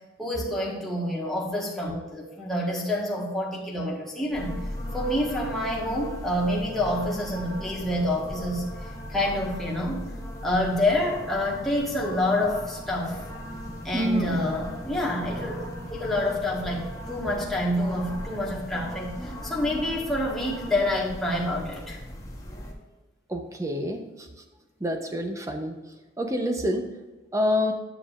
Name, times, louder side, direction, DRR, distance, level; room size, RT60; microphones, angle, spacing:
voice 1, 0.2-4.6 4.9-10.1 10.4-13.2 13.8-15.5 15.9-22.0, left 1 dB, ahead, -4 dB, 1.4 m, -27 dB
sound 1, 4.3-22.7, equal, 15° left, 1.0 m, -38 dB
voice 2, 13.9-14.4 23.3-24.3 24.8-25.8 26.2-26.9 27.3-27.7, equal, 15° right, 4 dB, 0.7 m, -27 dB
10.5 x 7.0 x 2.5 m, 1.2 s
head